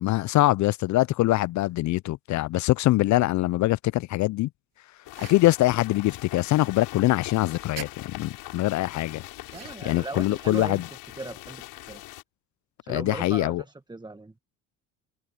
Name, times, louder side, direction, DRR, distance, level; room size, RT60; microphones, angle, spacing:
voice 1, 0.0-4.5 5.3-9.2 9.8-10.8 12.9-13.6, left 17 dB, 50° left, 0.5 m, -23 dB
sound 1, 5.0-12.2, left 18 dB, 70° left, 6.1 m, -42 dB
metal shovel into icy snow, 5.1-5.5 7.8-8.0 9.5-10.0, right 12 dB, 60° right, 7.0 m, -41 dB
voice 2, 9.5-10.8 11.2-12.0 12.8-14.3, right 2 dB, 10° right, 1.4 m, -38 dB
hypercardioid pair, 65°, 37 cm